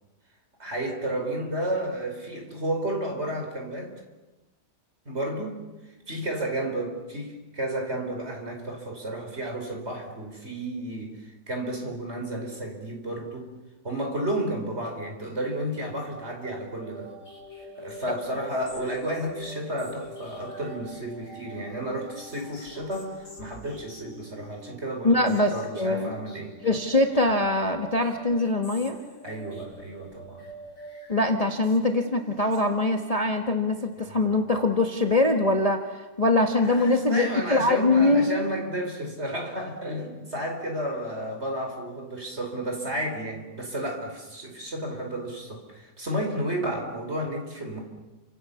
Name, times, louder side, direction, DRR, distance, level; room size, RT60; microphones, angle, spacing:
voice 1, 0.6-3.9 5.0-5.6 6.1-13.5 13.8-17.1 17.8-26.5 29.2-30.5 34.0-34.4 36.6-47.8, right 1 dB, 40° right, 3 dB, 5.1 m, -32 dB
sound 1, 16.7-33.2, equal, 50° left, 7.4 m, -45 dB
voice 2, 25.0-26.1 26.6-29.0 31.1-38.4, left 2 dB, 20° left, 4 dB, 1.6 m, -23 dB
29.5 x 26.5 x 7.1 m, 1.1 s
omnidirectional pair, 1.8 m